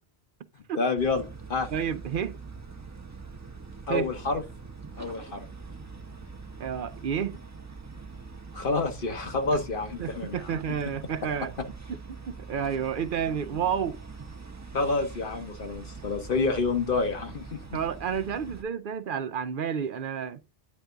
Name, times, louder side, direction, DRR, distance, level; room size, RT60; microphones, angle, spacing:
voice 1, 0.8-1.7 3.9-4.4 5.0-5.5 8.5-10.6 14.7-17.6, left 3 dB, 60° left, 1.3 m, -28 dB
sound 1, 1.0-18.6, right 4 dB, 20° right, 0.7 m, -43 dB
voice 2, 1.7-2.4 3.9-4.1 6.6-7.4 10.0-11.5 12.1-14.0 17.7-20.4, right 7 dB, 60° right, 0.7 m, -30 dB
9.4 x 3.5 x 3.8 m
omnidirectional pair, 1.0 m